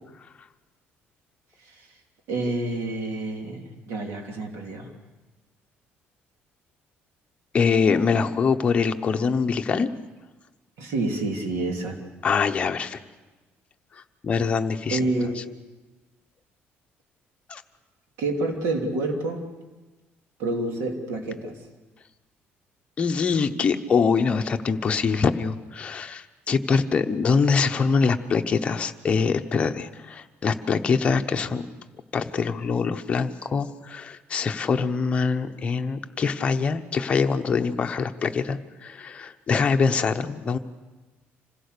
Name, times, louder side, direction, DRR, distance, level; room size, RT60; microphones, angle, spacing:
voice 1, 2.3-4.9 8.1-8.3 10.8-12.0 14.9-15.4 18.2-19.5 20.4-21.6, right 2 dB, 80° right, 2 dB, 3.2 m, -28 dB
voice 2, 7.5-9.9 12.2-13.0 14.2-15.0 17.5-17.6 23.0-31.6 32.1-40.6, left 5 dB, 25° left, 6 dB, 0.9 m, -24 dB
26.5 x 16.5 x 6.8 m, 1.2 s
cardioid pair, 160°, 4 cm